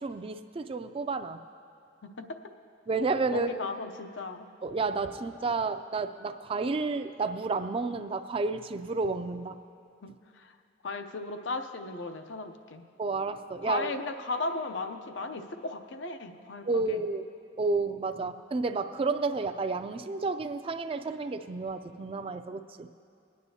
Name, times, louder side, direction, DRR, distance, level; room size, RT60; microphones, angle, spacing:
voice 1, 0.0-1.4 2.9-3.5 4.6-9.6 13.0-13.9 16.6-17.3 17.6-22.9, right 3 dB, 30° right, 8 dB, 0.4 m, -31 dB
voice 2, 2.0-2.4 3.3-4.5 10.0-10.5 10.8-12.8 13.6-17.0 18.2-18.3, left 3 dB, 75° left, 7 dB, 0.6 m, -36 dB
20.5 x 9.5 x 2.8 m, 2.4 s
head